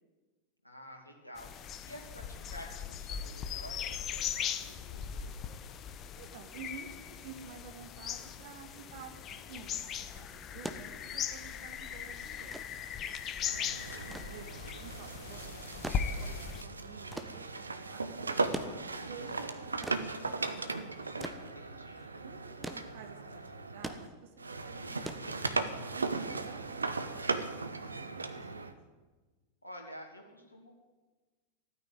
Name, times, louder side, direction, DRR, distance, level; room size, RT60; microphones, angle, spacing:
voice 1, 0.6-5.6 13.4-14.0 21.4-22.1 29.6-30.8, equal, 85° left, 1 dB, 2.4 m, -50 dB
sound 1, 1.4-16.6, left 8 dB, 30° left, 1.0 m, -39 dB
voice 2, 6.1-12.6 13.9-15.5 16.0-18.6 19.0-20.6 22.2-27.6 27.9-28.7, right 6 dB, 50° right, 5 dB, 2.1 m, -51 dB
sound 2, 10.6-25.9 27.1-27.3, right 1 dB, 5° right, 1.2 m, -45 dB
sound 3, 13.5-24.1 24.4-28.7, right 3 dB, 75° right, 1.0 m, -37 dB
14.5 x 9.6 x 9.3 m, 1.3 s
figure-of-eight pair, 90°, 0 cm